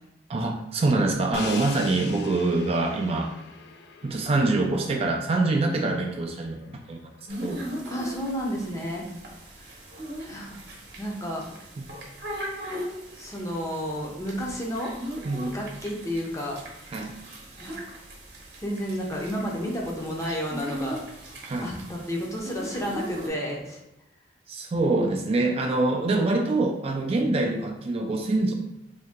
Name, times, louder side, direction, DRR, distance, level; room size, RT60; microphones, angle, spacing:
voice 1, 0.3-3.3 4.0-7.0 7.4-7.6 11.8-11.9 15.2-15.6 16.9-17.2 21.5-21.7 24.5-28.5, right 2 dB, 35° right, 3 dB, 0.3 m, -25 dB
Crash cymbal, 1.3-7.3, left 5 dB, 65° left, 0.3 m, -42 dB
sound 1, 7.3-23.3, equal, 65° right, 0.8 m, -39 dB
voice 2, 7.9-9.1 9.5-9.7 10.2-10.6 11.0-11.5 13.1-14.9 15.5-16.6 17.6-17.8 18.6-21.0 21.6-23.8, equal, 20° left, -1 dB, 0.6 m, -31 dB
2.7 x 2.7 x 3.5 m, 0.92 s
head